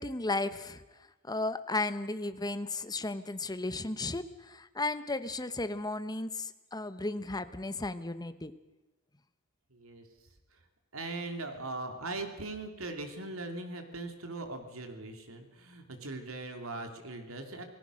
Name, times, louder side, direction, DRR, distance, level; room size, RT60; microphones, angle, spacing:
voice 1, 0.0-8.5, left 2 dB, 20° left, 12 dB, 1.1 m, -35 dB
voice 2, 9.7-10.1 10.5-10.6 10.9-17.6, right 2 dB, 90° right, 6 dB, 3.0 m, -40 dB
28.0 x 19.5 x 6.5 m, 1.1 s
head